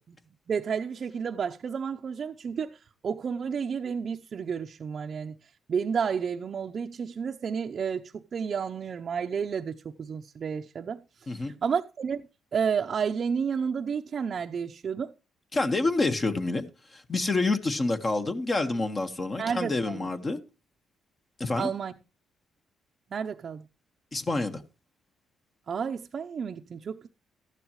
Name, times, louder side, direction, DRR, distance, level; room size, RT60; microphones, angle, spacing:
voice 1, 0.5-5.3 5.7-11.0 11.4-12.3 12.5-15.1 19.4-20.1 21.6-21.9 23.1-23.7 25.7-27.1, right 6 dB, 50° right, 0.7 m, -31 dB
voice 2, 15.5-16.7 16.9-20.4 21.4-21.7 24.1-24.6, left 2 dB, 30° left, 1.4 m, -27 dB
14.0 x 11.5 x 3.1 m
cardioid pair, 90°, 0 cm